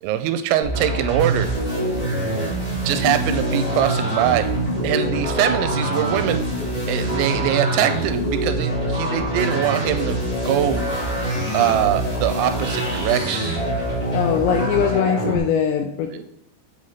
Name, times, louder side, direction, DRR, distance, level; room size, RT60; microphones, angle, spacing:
voice 1, 0.0-1.5 2.8-4.5 4.8-6.4 6.9-10.2 10.4-10.8 11.5-13.5 16.1-16.2, right 11 dB, 85° right, 9 dB, 2.9 m, -22 dB
sound 1, 0.6-15.4, right 1 dB, 15° left, 1.4 m, -24 dB
voice 2, 14.1-16.2, left 8 dB, 85° left, 6 dB, 2.5 m, -21 dB
8.0 x 4.9 x 4.2 m, 0.78 s
omnidirectional pair, 5.4 m